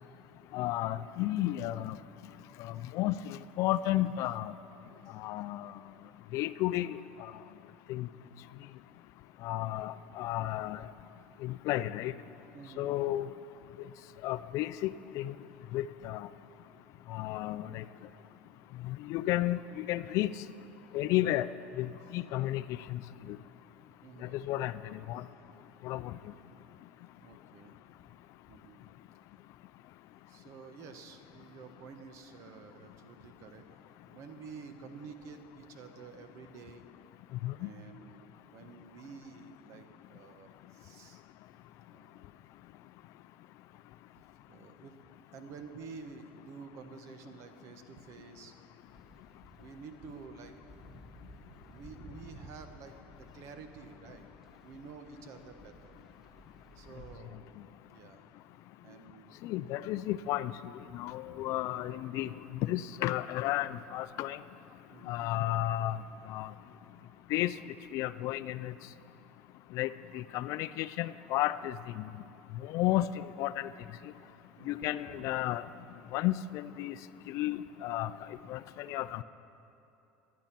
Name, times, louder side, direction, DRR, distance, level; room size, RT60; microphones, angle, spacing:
voice 1, 0.5-2.0 2.6-4.5 5.1-5.7 6.3-7.3 7.9-8.1 9.4-10.8 11.4-12.1 12.8-13.3 14.2-15.3 15.7-16.3 17.1-17.8 18.8-20.3 20.9-21.5 21.8-23.0 23.3-23.4 24.3-25.2 25.8-26.1 37.4-37.7 59.4-60.5 60.9-64.4 65.1-66.0 66.3-66.5 67.3-67.5 67.9-68.7 69.7-72.0 72.6-73.7 74.7-75.6 76.1-76.9 77.3-78.1 78.5-79.2, left 15 dB, 60° left, 15 dB, 0.4 m, -33 dB
voice 2, 12.5-12.9 24.0-24.4 25.2-25.3 27.2-27.8 28.5-28.8 30.3-33.7 34.0-36.9 37.6-41.2 41.9-42.3 44.2-48.5 49.5-50.6 51.2-54.3 54.6-56.0 56.7-57.5 57.9-58.3 58.8-59.5 60.9-61.0 61.3-62.1 64.9-65.3 74.6-75.3, right 5 dB, 60° right, 8 dB, 1.1 m, -50 dB
sound 1, 48.9-57.2, equal, 5° right, 1.6 m, -55 dB
13.5 x 9.5 x 5.9 m, 3.0 s
supercardioid pair, 100°, 6 cm